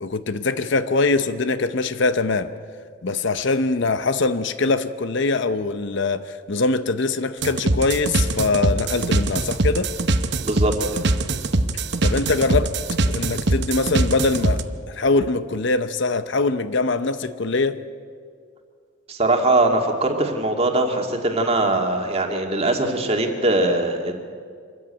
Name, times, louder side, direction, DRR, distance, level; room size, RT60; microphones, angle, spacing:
voice 1, 0.0-2.5 3.0-9.9 12.0-12.7 13.0-14.6 14.9-17.8, left 3 dB, 55° left, 12 dB, 0.7 m, -22 dB
sound 1, 7.4-14.6, right 2 dB, 55° right, 0.9 m, -22 dB
voice 2, 10.4-11.0 19.1-24.1, right 2 dB, 30° right, 2 dB, 2.1 m, -21 dB
25.0 x 14.0 x 9.0 m, 2.1 s
head